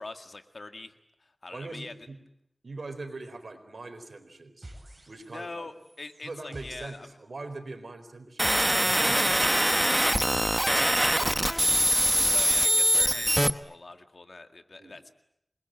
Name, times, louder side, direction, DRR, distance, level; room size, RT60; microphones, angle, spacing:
voice 1, 0.0-1.9 5.3-7.1 8.9-15.1, left 3 dB, 65° left, 8 dB, 2.0 m, -44 dB
voice 2, 1.5-2.2 2.6-4.7 5.1-5.7 6.2-9.4 11.2-11.4 12.1-12.4 14.8-15.0, right 3 dB, 75° right, 8 dB, 4.2 m, -42 dB
sound 1, 4.6-5.5 5.8-11.8, right 1 dB, 35° right, 7.6 m, -50 dB
sound 2, 8.4-13.5, equal, 10° right, 1.1 m, -23 dB
28.0 x 21.0 x 9.1 m, 0.77 s
wide cardioid pair, 60°, 0 cm